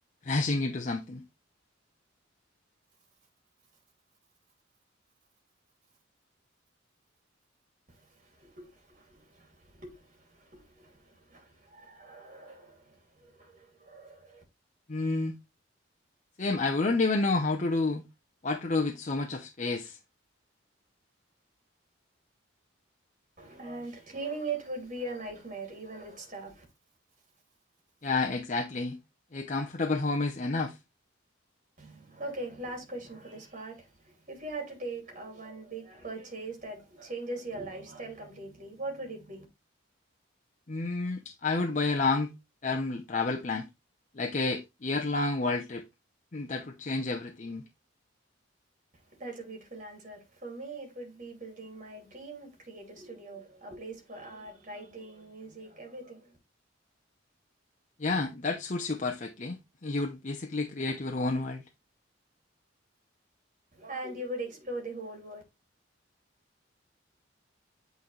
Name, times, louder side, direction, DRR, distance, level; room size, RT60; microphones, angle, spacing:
voice 1, 0.2-1.2 14.9-15.3 16.4-18.0 18.4-20.0 28.0-29.0 29.3-30.8 40.7-42.3 42.6-43.7 44.1-45.8 46.3-47.6 58.0-61.6, left 3 dB, 35° left, 0.6 m, -30 dB
voice 2, 7.9-14.4 23.4-26.6 31.8-39.4 48.9-56.4 63.7-65.4, right 2 dB, 40° right, 2.5 m, -41 dB
8.3 x 3.9 x 3.1 m
head